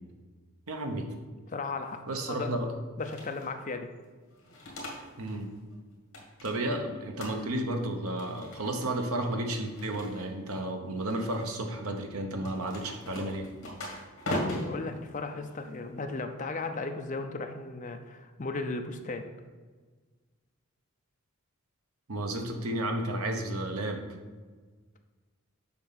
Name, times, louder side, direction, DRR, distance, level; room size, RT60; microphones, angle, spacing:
voice 1, 0.7-1.1 2.1-2.7 5.2-5.5 6.4-13.5 22.1-24.0, right 1 dB, 80° right, 4 dB, 0.9 m, -32 dB
voice 2, 1.5-2.0 2.3-2.5 3.0-3.9 14.3-19.3, left 3 dB, 35° left, 6 dB, 0.5 m, -35 dB
sound 1, 3.0-3.5 4.3-5.4 5.7-6.8 7.2-7.7 8.1-8.9 9.6-10.5 11.0-11.6 12.4-16.0, left 1 dB, 60° left, 1.9 m, -40 dB
7.0 x 5.4 x 4.0 m, 1.4 s
head